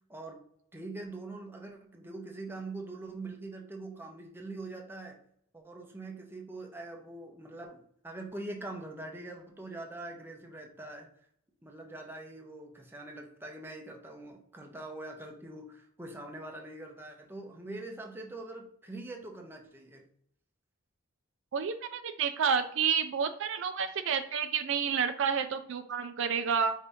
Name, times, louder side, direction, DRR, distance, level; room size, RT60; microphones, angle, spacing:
voice 1, 0.1-0.4 0.7-5.2 5.5-11.1 11.6-20.1, right 2 dB, 10° right, 2 dB, 0.6 m, -43 dB
voice 2, 21.5-26.7, right 6 dB, 60° right, 9 dB, 0.4 m, -30 dB
5.1 x 2.7 x 3.4 m, 0.70 s
head